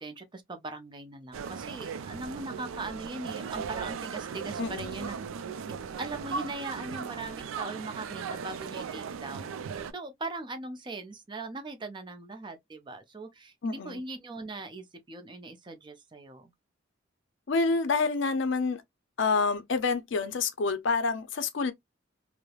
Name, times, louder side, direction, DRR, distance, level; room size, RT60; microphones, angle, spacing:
voice 1, 0.0-5.2 6.0-9.6 9.9-16.5, right 2 dB, 25° right, 0.5 m, -40 dB
sound 1, 1.3-9.9, right 6 dB, 90° right, 0.3 m, -37 dB
voice 2, 4.6-5.0 13.6-14.0 17.5-18.8 19.2-21.7, left 4 dB, 65° left, 0.5 m, -28 dB
3.1 x 2.0 x 2.3 m
head